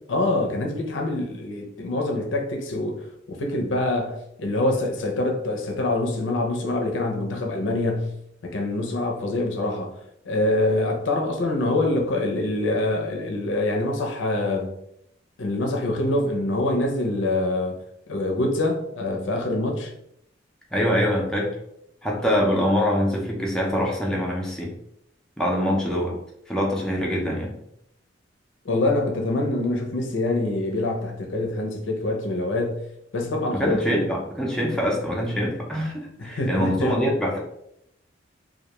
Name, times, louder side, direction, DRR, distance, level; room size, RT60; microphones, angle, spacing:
voice 1, 0.1-8.1 8.4-9.9 10.2-14.7 15.4-17.8 18.1-19.9 28.6-32.8 33.1-34.1 36.2-37.0, left 2 dB, 80° left, 0.5 m, -25 dB
voice 2, 20.7-21.5 22.0-24.7 25.4-26.2 26.5-27.6 33.5-37.4, equal, 5° left, 0.4 m, -24 dB
2.2 x 2.2 x 2.9 m
head